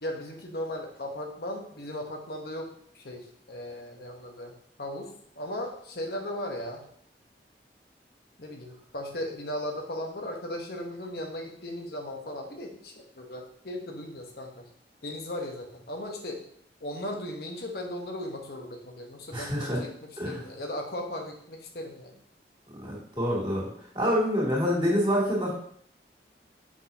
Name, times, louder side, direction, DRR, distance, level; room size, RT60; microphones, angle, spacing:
voice 1, 0.0-4.5 4.8-5.1 5.4-6.8 8.4-14.7 15.0-16.4 16.8-22.2, left 1 dB, 60° left, 1 dB, 1.0 m, -37 dB
voice 2, 19.3-19.8 20.2-20.4 22.8-23.7 23.9-25.5, equal, 25° right, -5 dB, 2.4 m, -26 dB
6.3 x 6.2 x 2.8 m, 0.65 s
head